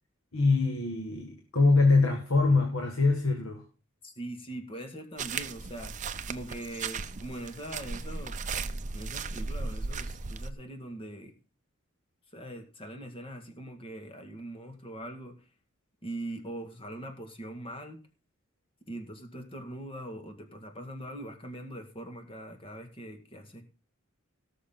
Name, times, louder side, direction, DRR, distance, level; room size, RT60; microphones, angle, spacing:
voice 1, 0.3-3.6, left 3 dB, 80° left, 3 dB, 1.9 m, -24 dB
voice 2, 4.0-6.0 6.3-8.4 8.9-11.3 12.3-15.4 16.0-18.0 18.9-23.6, right 1 dB, 25° left, 4 dB, 2.1 m, -42 dB
sound 1, 5.2-10.5, right 4 dB, 35° right, 0.7 m, -36 dB
18.0 x 6.5 x 3.9 m, 0.35 s
head